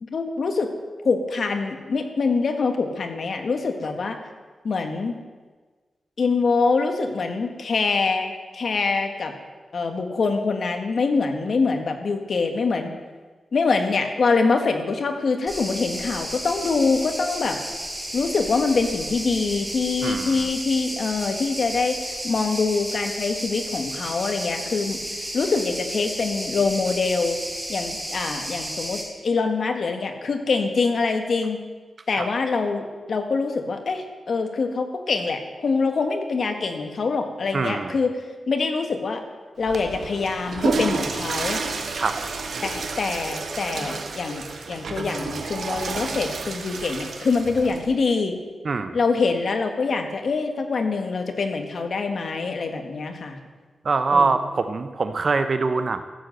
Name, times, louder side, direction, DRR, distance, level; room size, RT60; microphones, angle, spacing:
voice 1, 0.0-0.7 1.0-4.2 4.6-5.2 6.2-9.3 9.7-12.9 13.5-17.6 18.1-25.0 25.3-27.4 27.7-31.6 32.1-38.1 38.5-39.2 39.6-41.6 42.6-48.4 48.9-53.4 54.1-54.4, left 4 dB, 60° left, 5 dB, 1.7 m, -24 dB
sound 1, 15.5-29.0, equal, 10° right, 3.7 m, -33 dB
voice 2, 20.0-20.5 32.1-32.3 37.5-38.0 42.0-42.2 48.6-49.0 53.8-56.0, right 4 dB, 50° right, 9 dB, 0.7 m, -23 dB
Water / Toilet flush, 39.6-47.9, right 4 dB, 75° right, 1.4 m, -30 dB
14.0 x 7.8 x 7.8 m, 1.4 s
wide cardioid pair, 105°, 0 cm